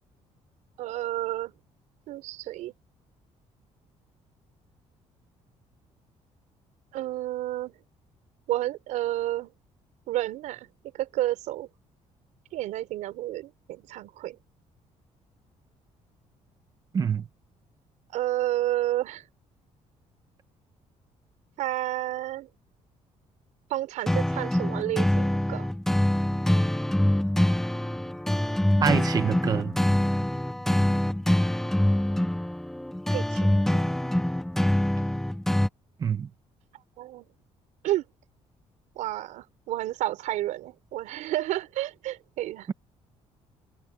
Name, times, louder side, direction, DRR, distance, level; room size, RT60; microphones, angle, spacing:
voice 1, 0.8-1.5 2.1-2.7 6.9-7.7 8.5-9.5 10.1-10.7 10.9-11.7 12.5-14.4 18.1-19.2 21.6-22.5 23.7-25.7 33.1-33.9 37.0-37.3 37.8-38.0 38.9-42.7, right 15 dB, 90° right, 5.1 m, -30 dB
voice 2, 16.9-17.3 28.8-29.8 36.0-36.3, right 7 dB, 30° right, 1.3 m, -26 dB
sound 1, 24.1-35.7, left 1 dB, 5° left, 0.4 m, -25 dB
cardioid pair, 155°, 12 cm